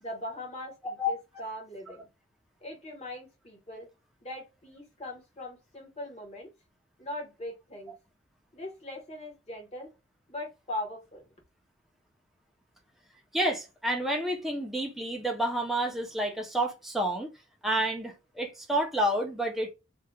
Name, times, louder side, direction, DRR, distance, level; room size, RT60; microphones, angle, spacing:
voice 1, 0.0-2.1 2.6-3.9 4.2-6.5 7.0-7.9 8.5-9.9 10.3-11.2, left 1 dB, 30° left, 1.1 m, -40 dB
voice 2, 13.3-17.3 17.6-19.7, right 1 dB, ahead, 0.5 m, -29 dB
2.8 x 2.2 x 3.4 m
head